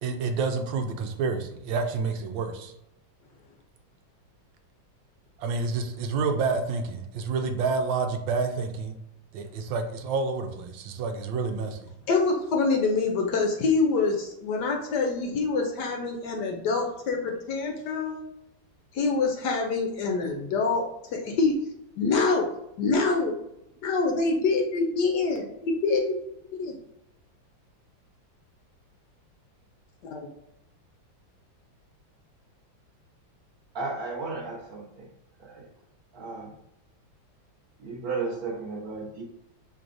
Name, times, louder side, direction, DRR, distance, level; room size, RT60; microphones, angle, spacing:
voice 1, 0.0-2.7 5.4-8.9 9.3-11.9, right 4 dB, 80° right, 5 dB, 1.3 m, -29 dB
voice 2, 12.1-18.2 18.9-21.5 22.0-22.5 22.8-23.3 23.8-26.1 26.6-26.8 30.1-30.3, left 4 dB, 70° left, 1 dB, 1.1 m, -25 dB
voice 3, 33.7-35.1 35.4-35.7 36.1-36.5 37.8-39.2, right 4 dB, 55° right, -2 dB, 1.4 m, -34 dB
5.9 x 3.4 x 2.5 m, 0.82 s
omnidirectional pair, 2.1 m